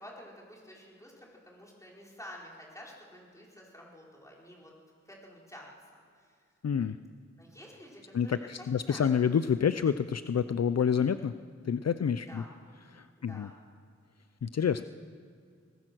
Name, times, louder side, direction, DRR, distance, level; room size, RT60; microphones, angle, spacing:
voice 1, 0.0-4.7 5.0-6.4 7.4-9.0 12.2-12.5 13.2-13.5, left 1 dB, 10° left, -3 dB, 4.9 m, -50 dB
voice 2, 6.6-7.0 8.1-11.3 11.6-12.4 12.9-13.5 14.4-14.8, left 7 dB, 60° left, 11 dB, 0.5 m, -28 dB
22.5 x 20.0 x 6.2 m, 2.2 s
wide cardioid pair, 85°, 29 cm